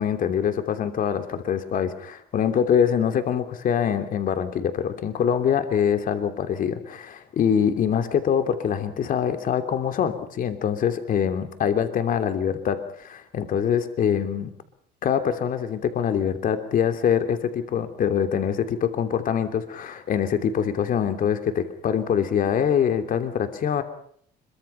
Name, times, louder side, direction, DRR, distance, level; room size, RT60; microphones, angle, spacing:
voice 1, 0.0-14.5 15.0-23.8, left 8 dB, 55° left, 8 dB, 3.0 m, -24 dB
26.0 x 23.5 x 5.7 m, 0.62 s
cardioid pair, 110°, 17 cm